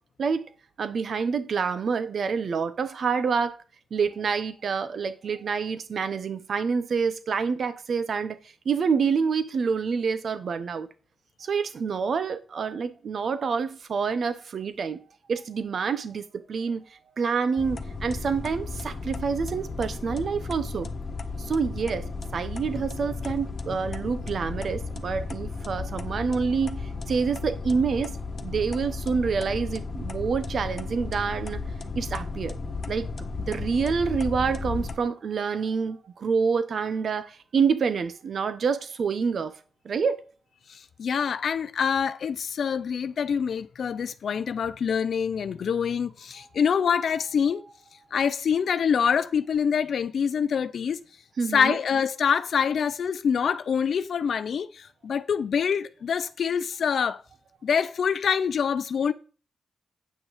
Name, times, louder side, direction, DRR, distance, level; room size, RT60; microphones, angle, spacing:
voice 1, 0.8-3.6 3.9-8.4 8.6-10.9 11.4-15.0 15.3-16.8 17.2-20.9 21.4-31.6 31.9-32.6 32.9-33.1 33.5-39.6 39.8-40.2 51.4-51.8, right 5 dB, 70° right, 1.0 m, -27 dB
sound 1, 17.6-35.0, left 3 dB, 55° left, 1.2 m, -34 dB
voice 2, 40.7-47.6 48.1-51.0 51.5-57.2 57.6-59.1, left 7 dB, 75° left, 0.5 m, -25 dB
8.7 x 6.2 x 5.0 m
cardioid pair, 50°, 0 cm